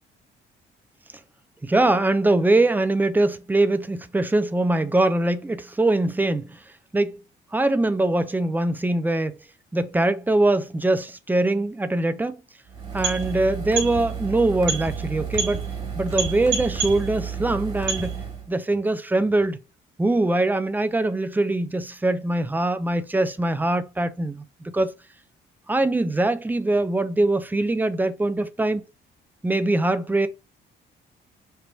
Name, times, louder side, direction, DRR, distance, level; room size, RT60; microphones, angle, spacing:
voice 1, 1.6-6.6 6.9-7.2 7.5-9.4 9.7-12.4 12.9-15.7 15.9-18.2 18.5-19.6 20.0-24.9 25.7-28.8 29.4-30.3, right 2 dB, 10° right, 0.5 m, -22 dB
sound 1, 12.7-18.5, right 6 dB, 25° right, 1.8 m, -29 dB
3.3 x 2.5 x 4.5 m
cardioid pair, 90°, 20 cm